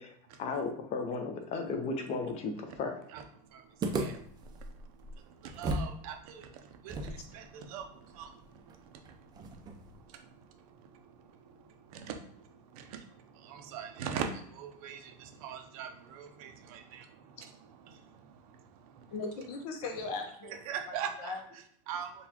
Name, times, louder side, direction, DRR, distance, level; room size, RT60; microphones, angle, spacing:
voice 1, 0.0-3.0, left 4 dB, 35° left, 5 dB, 0.6 m, -35 dB
voice 2, 3.1-19.1 20.5-22.3, right 7 dB, 70° right, 6 dB, 0.6 m, -44 dB
sound 1, 3.8-6.0 6.2-6.3 6.9-10.0, right 2 dB, 20° right, 0.4 m, -38 dB
voice 3, 19.1-20.6 20.9-21.4, left 3 dB, 70° left, 4 dB, 0.8 m, -38 dB
4.0 x 2.3 x 2.8 m, 0.64 s
supercardioid pair, 140°, 19 cm